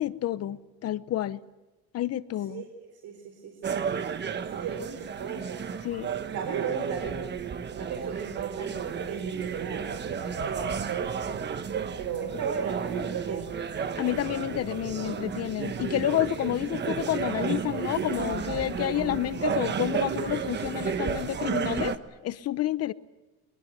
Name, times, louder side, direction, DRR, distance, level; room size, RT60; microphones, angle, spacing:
voice 1, 0.0-1.4 1.9-2.6 5.8-6.1 14.0-22.0 22.2-22.9, left 13 dB, 50° left, 0.9 m, -29 dB
voice 2, 3.0-3.8 4.5-5.7 6.3-7.3 7.8-11.6 12.0-13.5, right 7 dB, 65° right, 4.0 m, -35 dB
sound 1, 3.6-22.0, right 7 dB, 35° right, 1.2 m, -32 dB
23.0 x 22.5 x 9.2 m
cardioid pair, 140°, 33 cm